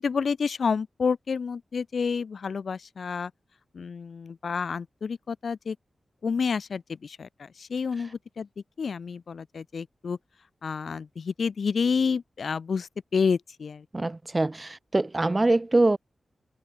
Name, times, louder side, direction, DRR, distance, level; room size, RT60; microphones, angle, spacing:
voice 1, 0.0-3.3 3.7-5.8 6.2-8.5 8.8-10.2 10.6-13.8, left 5 dB, 75° left, 0.6 m, -29 dB
voice 2, 13.9-16.0, right 2 dB, 25° right, 0.6 m, -24 dB
wide cardioid pair, 85°, 0 cm